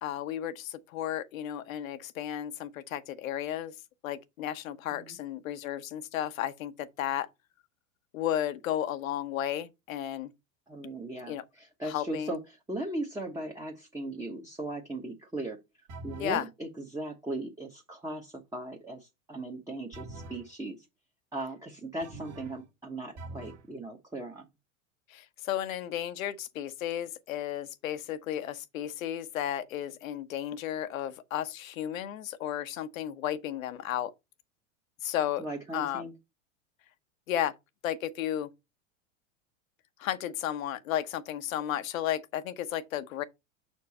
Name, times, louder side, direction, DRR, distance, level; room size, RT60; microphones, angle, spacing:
voice 1, 0.0-3.7 4.0-7.3 8.1-10.3 11.3-11.4 11.8-12.4 16.2-16.5 25.1-34.1 35.0-35.5 35.7-36.1 37.3-37.5 37.8-38.5 40.0-43.2, left 11 dB, 80° left, 0.9 m, -33 dB
voice 2, 10.7-12.4 12.7-15.6 16.0-20.8 21.3-24.4 35.4-36.1, right 1 dB, 10° right, 1.1 m, -38 dB
sound 1, 15.9-16.4 19.9-20.5 22.0-22.7 23.2-23.7, right 2 dB, 40° right, 1.7 m, -44 dB
6.3 x 4.6 x 4.2 m
hypercardioid pair, 110°, 40 cm